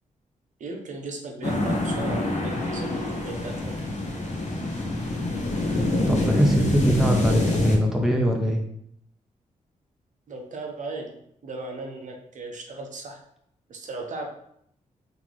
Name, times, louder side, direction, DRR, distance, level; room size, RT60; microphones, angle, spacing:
voice 1, 0.6-3.7 10.3-11.2 11.4-13.2 13.7-14.3, right 3 dB, 65° right, 2 dB, 0.7 m, -36 dB
sound 1, 1.4-7.8, left 1 dB, 55° left, 1.0 m, -26 dB
voice 2, 6.1-8.6, equal, 5° right, 1 dB, 0.6 m, -22 dB
3.9 x 2.9 x 3.0 m, 0.70 s
cardioid pair, 90°, 14 cm